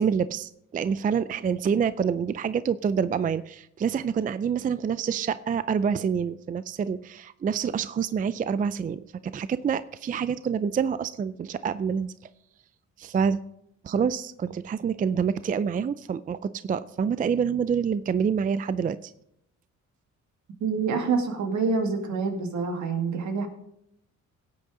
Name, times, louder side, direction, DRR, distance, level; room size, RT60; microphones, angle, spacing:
voice 1, 0.0-12.1 13.0-13.4 13.8-19.1, right 7 dB, 30° right, 15 dB, 0.4 m, -27 dB
voice 2, 20.6-23.5, right 4 dB, 70° right, 5 dB, 2.0 m, -26 dB
16.5 x 8.4 x 3.7 m, 0.77 s
cardioid pair, 90°, 30 cm